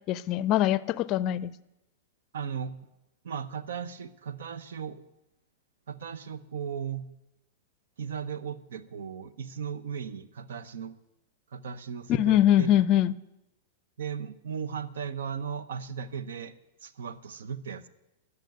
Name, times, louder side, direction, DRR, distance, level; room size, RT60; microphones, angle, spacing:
voice 1, 0.1-1.5 12.1-13.1, left 12 dB, 40° left, 19 dB, 0.5 m, -23 dB
voice 2, 2.3-2.9 3.2-5.0 5.9-7.1 8.0-11.0 11.5-12.7 14.0-16.5 16.8-17.9, right 7 dB, 80° right, 15 dB, 0.8 m, -36 dB
11.5 x 6.7 x 9.3 m, 0.92 s
hypercardioid pair, 130°, 0 cm